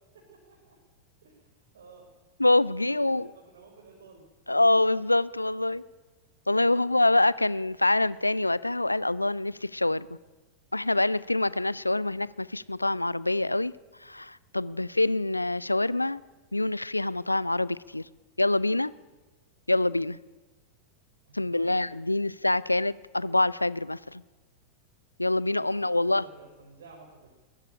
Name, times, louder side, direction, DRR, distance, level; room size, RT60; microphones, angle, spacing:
voice 1, 0.3-0.7 1.2-2.1 2.7-4.2 6.5-6.7 14.5-14.8 21.2-21.8 25.5-27.3, right 4 dB, 65° right, 0 dB, 5.0 m, -53 dB
voice 2, 2.4-3.3 4.5-5.8 6.5-10.1 10.7-13.7 14.0-16.2 16.5-18.1 18.4-18.9 19.7-20.2 21.3-24.2 25.2-26.2, left 2 dB, 85° left, 20 dB, 0.6 m, -25 dB
21.5 x 17.5 x 9.9 m, 1.2 s
figure-of-eight pair, 90°, 0 cm